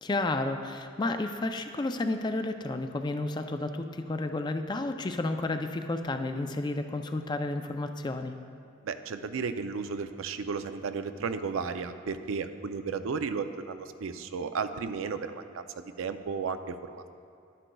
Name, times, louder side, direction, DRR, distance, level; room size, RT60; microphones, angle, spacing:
voice 1, 0.0-8.4, left 2 dB, 20° left, 7 dB, 0.3 m, -31 dB
voice 2, 8.8-15.7 16.0-17.1, right 5 dB, 85° right, 9 dB, 0.4 m, -34 dB
11.0 x 10.0 x 2.3 m, 2.4 s
head